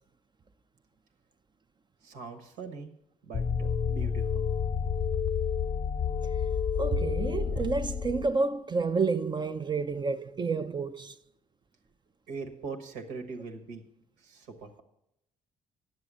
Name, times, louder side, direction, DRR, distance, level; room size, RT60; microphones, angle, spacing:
voice 1, 2.0-2.9 3.2-4.5 12.3-13.8 14.2-14.8, right 4 dB, 90° right, 1.4 m, -41 dB
sound 1, 3.3-8.3, left 7 dB, 35° left, 0.5 m, -29 dB
voice 2, 6.8-11.2, right 4 dB, 30° right, 0.5 m, -29 dB
9.6 x 7.6 x 6.2 m
supercardioid pair, 60°, 16 cm